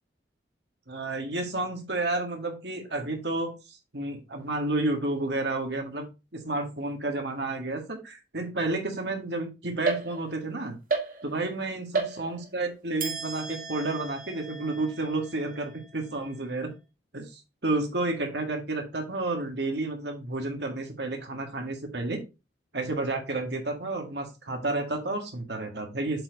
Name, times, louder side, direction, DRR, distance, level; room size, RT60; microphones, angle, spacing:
voice 1, 0.9-6.1 6.3-10.8 11.2-16.7 17.1-22.2 22.7-26.2, right 2 dB, 70° right, 4 dB, 1.9 m, -31 dB
sound 1, 9.9-10.5 10.9-11.6 11.9-12.6 13.0-16.5, right 4 dB, 50° right, 1.6 m, -34 dB
7.7 x 4.4 x 3.9 m, 0.26 s
head